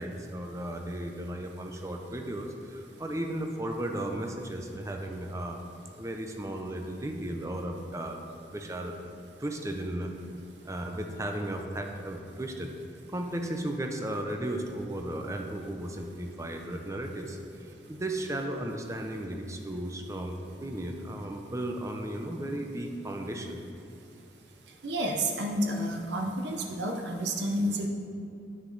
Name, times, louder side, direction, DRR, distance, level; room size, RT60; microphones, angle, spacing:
voice 1, 0.0-5.6 6.0-8.2 8.5-9.0 9.4-10.1 10.6-12.7 13.1-23.6, right 1 dB, 15° right, 3 dB, 0.5 m, -35 dB
voice 2, 24.8-27.9, right 1 dB, 75° right, 2 dB, 0.7 m, -30 dB
9.5 x 6.1 x 3.9 m, 2.5 s
head